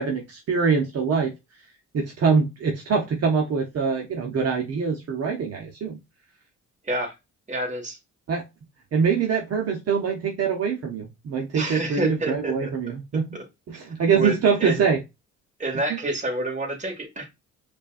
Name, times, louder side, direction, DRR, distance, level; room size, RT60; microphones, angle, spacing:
voice 1, 0.0-1.3 1.9-6.0 8.3-8.4 8.9-13.4 13.7-15.0 15.9-16.0, right 5 dB, 55° right, 0 dB, 1.0 m, -24 dB
voice 2, 7.5-8.0 11.5-12.7 14.2-14.8 15.6-17.3, right 1 dB, 25° right, 1 dB, 1.8 m, -28 dB
5.1 x 2.5 x 2.5 m, 0.23 s
cardioid pair, 90°, 30 cm